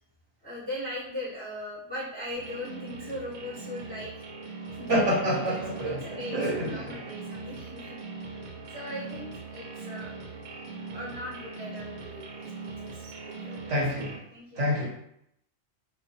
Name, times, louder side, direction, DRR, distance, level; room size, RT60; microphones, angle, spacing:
voice 1, 0.4-8.0 8.7-10.1 10.9-13.7 14.3-14.6, left 1 dB, 10° left, -10 dB, 0.9 m, -39 dB
sound 1, 2.3-14.2, right 4 dB, 90° right, 1.0 m, -41 dB
voice 2, 4.9-6.0 6.3-7.0 13.7-14.2 14.6-14.9, equal, 65° right, -4 dB, 1.0 m, -27 dB
2.2 x 2.2 x 2.6 m, 0.74 s
omnidirectional pair, 1.4 m